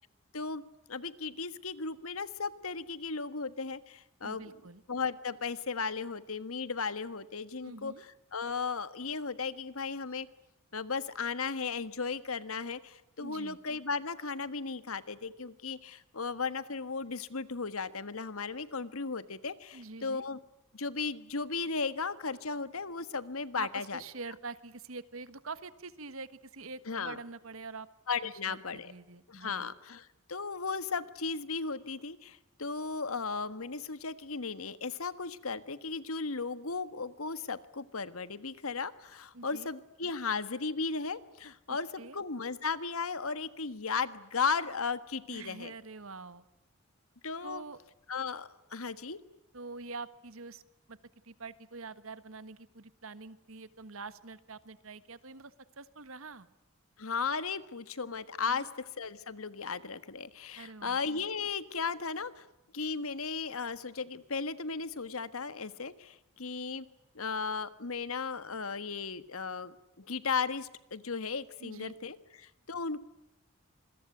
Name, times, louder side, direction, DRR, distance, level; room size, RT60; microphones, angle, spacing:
voice 1, 0.9-4.5 4.9-7.9 8.3-10.3 10.7-20.4 20.7-24.0 26.9-27.2 28.1-28.9 29.3-45.7 47.2-47.6 48.1-49.2 57.0-62.4 62.7-66.9 67.1-73.0, left 4 dB, 80° left, 14 dB, 1.5 m, -36 dB
voice 2, 4.2-4.8 7.6-8.0 13.2-13.6 19.7-20.3 23.6-27.9 28.2-29.7 39.3-39.7 41.7-42.2 45.3-46.4 47.4-47.8 49.5-50.6 50.9-51.0 51.2-56.5 58.5-58.7 60.6-61.0 71.6-71.9, right 3 dB, 75° right, 14 dB, 1.5 m, -45 dB
26.5 x 22.0 x 9.4 m, 0.91 s
head